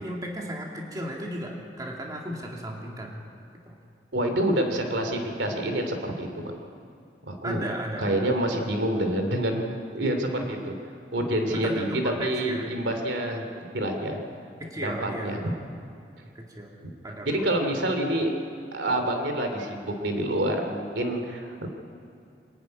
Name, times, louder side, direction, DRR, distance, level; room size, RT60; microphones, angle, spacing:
voice 1, 0.0-3.2 3.7-3.8 7.4-8.2 11.5-12.7 14.6-15.5 16.3-16.7 17.0-17.3 17.7-17.9, equal, 20° right, -1 dB, 2.4 m, -35 dB
voice 2, 4.1-6.5 7.3-7.6 8.0-10.7 11.1-11.9 12.2-13.5 13.7-14.2 14.8-15.4 16.8-16.9 17.3-18.3 18.7-21.7, right 1 dB, 85° right, 5 dB, 2.8 m, -27 dB
24.5 x 11.0 x 9.5 m, 2.5 s
head